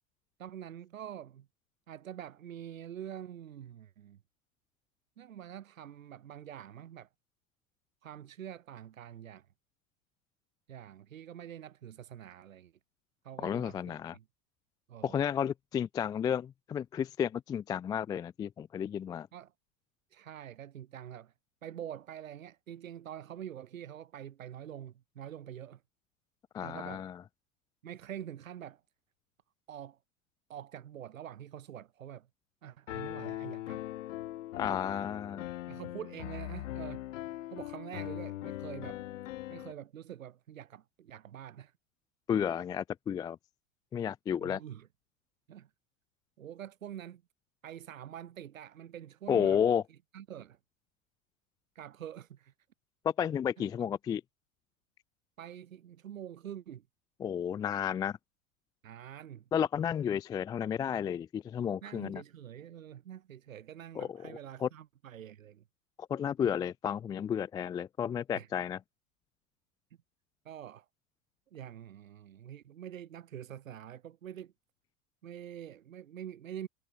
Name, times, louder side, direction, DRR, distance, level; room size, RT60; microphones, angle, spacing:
voice 1, 0.4-1.5 1.9-4.2 5.2-7.1 8.0-9.5 10.7-12.7 13.2-14.2 14.9-15.2 19.3-19.5 20.1-21.3 21.6-25.8 26.6-27.1 27.8-28.8 29.7-30.0 30.5-32.3 32.6-33.8 35.7-37.0 37.5-39.0 39.5-41.7 42.3-42.5 44.4-44.9 45.5-45.7 46.4-47.2 47.6-49.6 50.1-50.6 51.7-52.5 53.6-53.7 55.4-56.8 58.8-59.4 61.8-65.6 68.3-68.5 70.4-70.9 71.5-74.5 75.2-76.7, right 10 dB, 70° right, 6.2 m, -46 dB
voice 2, 13.4-14.2 15.0-19.3 26.5-27.1 34.6-35.4 42.3-43.4 43.9-44.6 49.3-49.8 53.0-54.2 57.2-58.2 59.5-62.2 64.0-64.3 64.6-64.7 66.1-68.8, left 8 dB, 10° left, 0.3 m, -32 dB
Piano, 32.9-39.7, left 15 dB, 65° left, 1.0 m, -40 dB
figure-of-eight pair, 90°, 41 cm